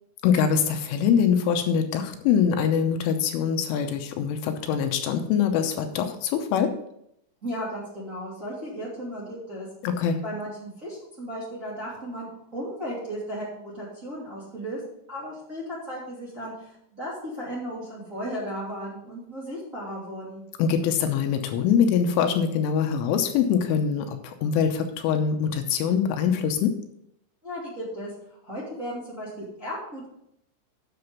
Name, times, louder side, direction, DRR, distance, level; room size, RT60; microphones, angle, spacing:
voice 1, 0.2-6.7 9.8-10.2 20.6-26.7, left 7 dB, 85° left, 6 dB, 3.2 m, -23 dB
voice 2, 7.4-9.7 10.2-14.8 15.1-20.4 27.4-30.1, equal, 25° right, -6 dB, 2.1 m, -35 dB
9.6 x 6.8 x 5.5 m, 0.75 s
omnidirectional pair, 5.9 m